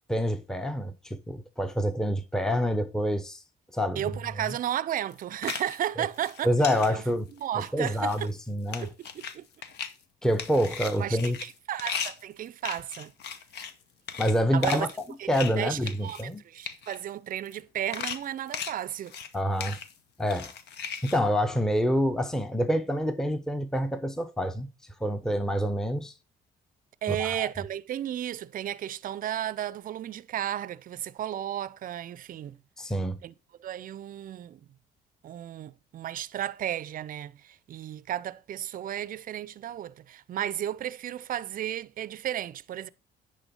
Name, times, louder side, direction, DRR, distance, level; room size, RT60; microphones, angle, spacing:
voice 1, 0.1-3.4 3.7-4.1 6.4-7.3 7.7-8.9 10.2-11.4 14.2-14.9 15.3-16.4 19.3-19.8 20.2-20.5 21.0-24.7 25.0-26.1 27.1-27.5 32.8-33.2, equal, 5° left, 0.8 m, -27 dB
voice 2, 4.0-6.5 6.9-7.0 7.4-8.3 8.8-9.5 11.0-13.1 14.5-14.9 15.2-15.3 15.6-19.1 27.0-32.6 33.2-33.3 33.6-34.6 35.2-42.9, right 11 dB, 50° right, 0.5 m, -34 dB
sound 1, 5.1-5.9 6.2-6.9 7.4-7.7 7.9-8.4 8.7-9.4 9.6-9.9 10.2-13.8 14.1-14.4 14.6-15.5 15.8-16.3 16.6-17.0 17.5-17.6 17.9-19.3 19.6-19.9 20.3-21.2, left 7 dB, 70° left, 0.9 m, -37 dB
9.9 x 3.6 x 5.3 m
supercardioid pair, 75°, 18 cm